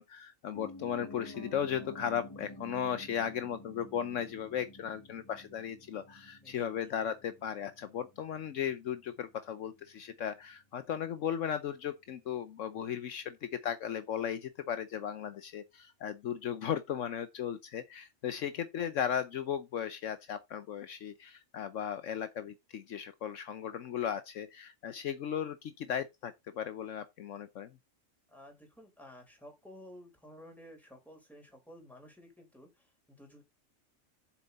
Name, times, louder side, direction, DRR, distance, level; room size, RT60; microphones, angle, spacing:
voice 1, 0.0-27.7, left 9 dB, 70° left, 1.1 m, -36 dB
Piano, 0.5-10.5 10.8-10.9, left 2 dB, 20° left, 0.9 m, -51 dB
voice 2, 6.4-6.8 18.4-18.7 28.3-33.4, equal, ahead, 4.1 m, -54 dB
8.0 x 7.1 x 4.0 m
omnidirectional pair, 1.4 m